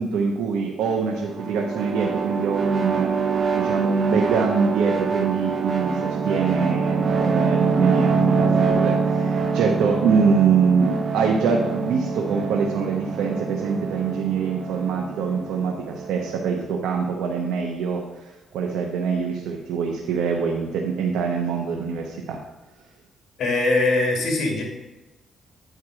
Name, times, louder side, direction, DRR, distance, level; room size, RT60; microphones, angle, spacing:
voice 1, 0.0-3.1 3.5-18.0 18.5-22.4, right 5 dB, 85° right, 0 dB, 0.9 m, -24 dB
sound 1, 1.2-16.6, right 5 dB, 45° right, 0.7 m, -24 dB
voice 2, 23.4-24.6, left 2 dB, 65° left, 1 dB, 2.2 m, -21 dB
9.0 x 4.7 x 4.8 m, 1.1 s
cardioid pair, 90°, 0 cm